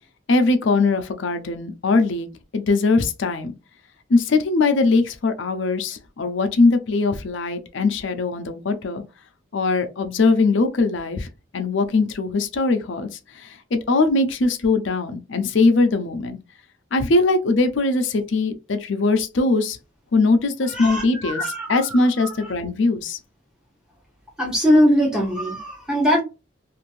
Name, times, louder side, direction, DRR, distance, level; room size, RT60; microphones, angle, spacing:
voice 1, 0.3-2.3 2.5-3.5 4.1-9.0 9.5-11.3 11.5-16.4 16.9-19.8 20.1-21.4 21.7-23.2, left 3 dB, 70° left, 0.5 m, -21 dB
voice 2, 20.6-22.5 24.4-26.2, equal, 5° right, 0.7 m, -21 dB
2.6 x 2.5 x 3.1 m
head